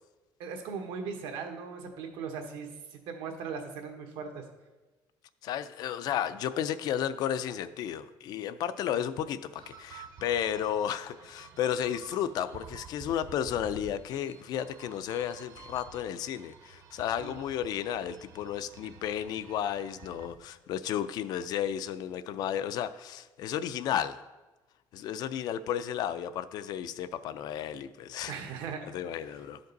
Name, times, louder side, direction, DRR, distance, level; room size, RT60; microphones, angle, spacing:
voice 1, 0.4-4.4 17.2-17.4 28.3-28.8, right 5 dB, 80° right, 4 dB, 1.3 m, -38 dB
voice 2, 5.4-24.2 24.9-28.3 28.8-29.6, left 10 dB, 55° left, 13 dB, 0.4 m, -33 dB
sound 1, 9.5-20.3, right 5 dB, 45° right, 0.7 m, -50 dB
11.5 x 5.2 x 4.0 m, 1.2 s
cardioid pair, 165°, 8 cm